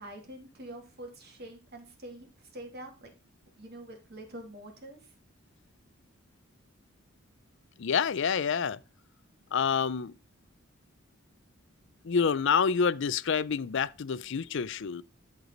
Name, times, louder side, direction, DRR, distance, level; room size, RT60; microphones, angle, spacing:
voice 1, 0.0-3.1 3.6-5.1, right 1 dB, 50° right, 2.9 m, -45 dB
voice 2, 7.8-8.8 9.5-10.1 12.0-15.0, left 6 dB, 60° left, 0.5 m, -27 dB
13.0 x 4.7 x 4.0 m
head